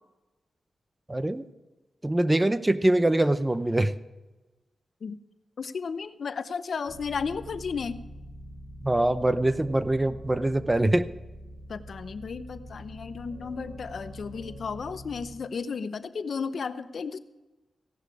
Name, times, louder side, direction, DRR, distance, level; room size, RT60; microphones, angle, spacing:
voice 1, 1.1-1.4 2.0-3.9 8.8-11.1, right 1 dB, 15° right, 13 dB, 0.7 m, -23 dB
voice 2, 5.6-8.0 11.7-17.2, left 5 dB, 65° left, 12 dB, 0.8 m, -34 dB
sound 1, 6.9-15.3, equal, 55° right, 4.4 m, -44 dB
16.5 x 11.5 x 4.8 m, 1.1 s
cardioid pair, 80°, 0 cm